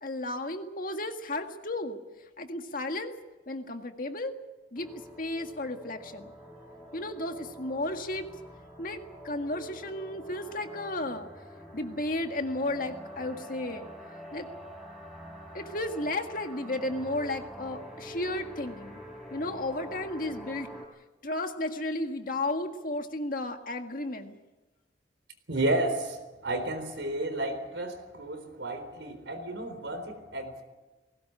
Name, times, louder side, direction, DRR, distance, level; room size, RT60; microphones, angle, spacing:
voice 1, 0.0-2.0 2.4-3.1 3.5-4.3 4.7-4.9 5.2-6.3 6.9-8.3 8.8-11.3 11.7-13.9 14.3-14.5 15.5-19.0 19.3-20.7 21.2-24.4, left 1 dB, 50° left, 5 dB, 1.8 m, -33 dB
sound 1, 4.7-20.9, equal, ahead, 3.7 m, -46 dB
voice 2, 25.5-30.6, right 1 dB, 85° right, 7 dB, 4.1 m, -32 dB
20.0 x 18.0 x 8.9 m, 1.1 s
head